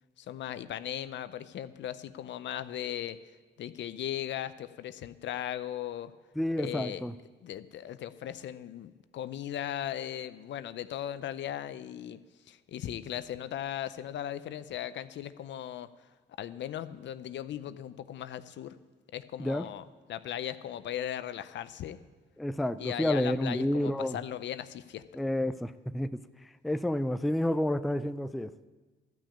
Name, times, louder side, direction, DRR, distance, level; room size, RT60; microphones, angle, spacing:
voice 1, 0.2-3.2 3.6-6.1 6.6-7.0 7.4-12.2 12.5-15.9 16.4-18.7 19.1-22.0 22.8-25.0, left 11 dB, 65° left, 13 dB, 0.6 m, -38 dB
voice 2, 6.4-7.2 19.4-19.7 22.4-24.2 25.1-28.5, left 1 dB, ahead, 12 dB, 0.3 m, -30 dB
13.0 x 6.1 x 8.6 m, 1.3 s
cardioid pair, 90°, 20 cm